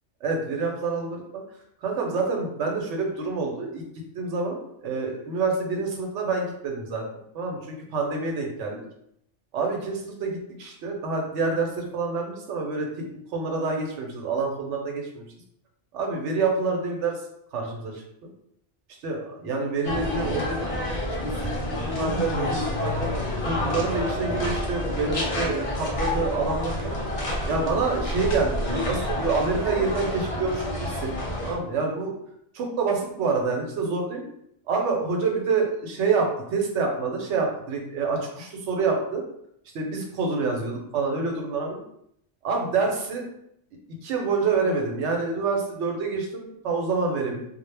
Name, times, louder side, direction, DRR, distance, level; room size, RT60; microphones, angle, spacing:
voice 1, 0.2-1.4 1.8-3.8 4.1-8.8 9.5-13.1 13.3-15.2 15.9-17.2 17.5-18.0 19.0-21.2 21.4-23.1 23.4-26.9 27.5-31.1 31.4-32.1 32.5-34.2 34.7-39.2 39.7-41.8 42.4-43.2 44.0-47.4, right 4 dB, 80° right, 1 dB, 0.9 m, -27 dB
sound 1, 19.8-31.6, left 1 dB, 55° left, 0.3 m, -28 dB
2.1 x 2.0 x 3.2 m, 0.73 s
omnidirectional pair, 1.3 m